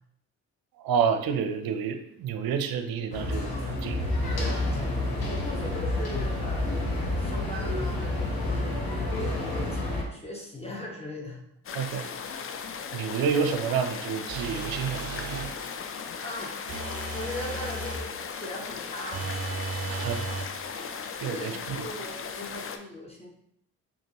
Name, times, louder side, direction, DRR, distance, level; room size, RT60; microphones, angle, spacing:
voice 1, 0.8-4.0 11.7-12.1 12.9-15.5 19.9-20.2 21.0-21.9, right 7 dB, 55° right, 7 dB, 0.6 m, -29 dB
sound 1, 3.1-10.0, left 2 dB, 60° left, 1.2 m, -29 dB
voice 2, 4.3-4.9 5.3-11.4 16.2-16.7 17.1-19.3 21.3-23.3, left 1 dB, 15° left, -2 dB, 1.0 m, -40 dB
sound 2, 11.6-22.8, left 6 dB, 35° left, 0.5 m, -37 dB
sound 3, 14.3-15.6 16.7-18.1 19.1-20.6, right 3 dB, 35° right, 0.9 m, -35 dB
5.1 x 2.7 x 2.9 m, 0.72 s
hypercardioid pair, 40°, 42 cm